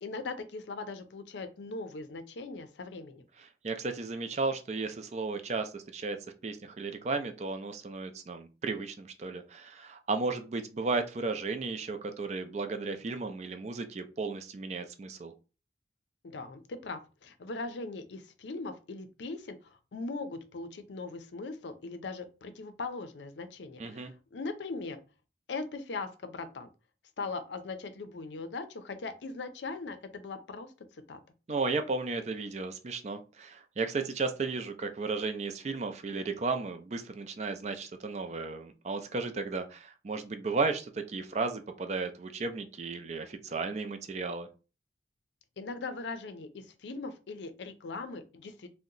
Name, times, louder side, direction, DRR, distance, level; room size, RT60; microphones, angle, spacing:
voice 1, 0.0-3.2 16.2-25.0 25.5-26.7 27.2-31.2 45.6-48.7, left 3 dB, 85° left, 0.5 m, -40 dB
voice 2, 3.6-6.2 6.4-15.3 23.8-24.1 31.5-44.5, right 3 dB, 40° right, 0.4 m, -34 dB
2.7 x 2.1 x 3.8 m
head